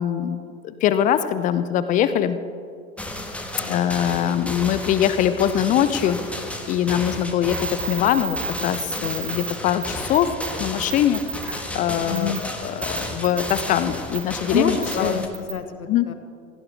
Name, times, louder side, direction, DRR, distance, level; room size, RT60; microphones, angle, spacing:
voice 1, 0.0-2.4 3.7-6.2 6.7-10.3 10.6-15.2 15.9-16.1, left 10 dB, 20° left, 12 dB, 0.4 m, -22 dB
sound 1, 3.0-15.3, left 1 dB, 5° left, 1.4 m, -33 dB
sound 2, 7.5-9.5 9.8-9.9 10.1-10.5 10.8-11.5 12.2-12.4 12.8-13.6 14.1-14.2 14.8-14.9 15.3-15.5, right 5 dB, 45° right, 4.0 m, -31 dB
voice 2, 12.1-12.5 14.5-16.1, left 5 dB, 75° left, 9 dB, 1.3 m, -27 dB
17.5 x 15.5 x 3.4 m, 2.3 s
figure-of-eight pair, 85°, 43 cm